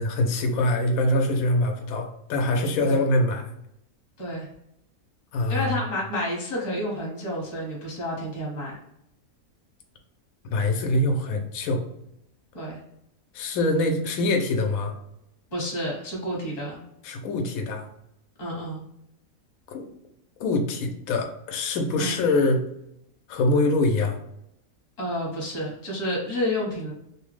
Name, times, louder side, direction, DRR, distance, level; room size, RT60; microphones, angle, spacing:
voice 1, 0.0-3.5 5.3-5.9 10.4-11.9 13.3-15.0 17.0-17.9 19.7-19.9 20.4-22.6 23.3-24.2, left 2 dB, 75° left, 3 dB, 1.0 m, -24 dB
voice 2, 5.5-8.8 12.5-12.8 15.5-16.8 18.4-18.8 22.0-22.2 25.0-26.9, left 1 dB, 30° left, -3 dB, 1.1 m, -30 dB
3.0 x 2.1 x 3.1 m, 0.77 s
omnidirectional pair, 1.5 m